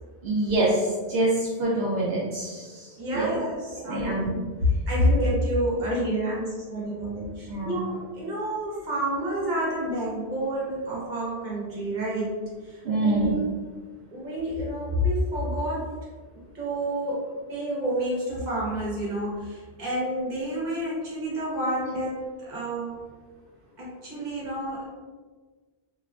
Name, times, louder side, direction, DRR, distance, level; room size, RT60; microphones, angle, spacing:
voice 1, 0.2-3.4 3.9-4.3 7.5-7.8 12.8-13.3, right 2 dB, 75° right, -6 dB, 0.8 m, -26 dB
voice 2, 3.0-4.3 4.6-12.3 12.6-13.5 14.1-15.9 16.5-23.0 23.8-24.9, equal, 50° right, -6 dB, 1.0 m, -28 dB
2.8 x 2.3 x 2.2 m, 1.4 s
omnidirectional pair, 1.1 m